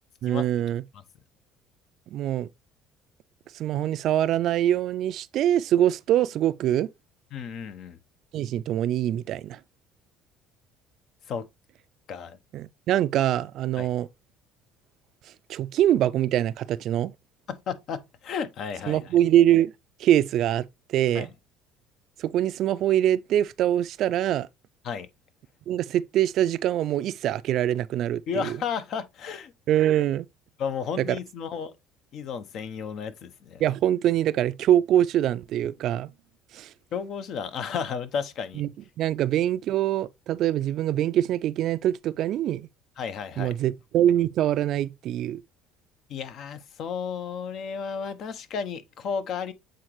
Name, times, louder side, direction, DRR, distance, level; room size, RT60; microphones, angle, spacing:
voice 1, 0.2-0.8 2.1-2.5 3.5-6.9 8.3-9.6 12.5-14.1 15.5-17.1 18.9-19.7 20.0-20.6 20.9-21.3 22.2-24.5 25.7-28.6 29.7-30.3 31.0-31.2 33.6-36.1 36.5-36.7 38.6-38.7 39.0-42.6 43.4-45.4, right 12 dB, 60° right, 0.4 m, -24 dB
voice 2, 7.3-8.0 11.3-11.5 12.1-12.4 13.8-13.9 17.5-19.0 21.1-21.3 24.8-25.1 28.3-29.5 30.6-31.7 32.1-33.6 36.9-38.6 43.0-43.6 46.1-49.5, left 6 dB, 55° left, 0.8 m, -33 dB
8.0 x 3.9 x 3.1 m
cardioid pair, 110°, 0 cm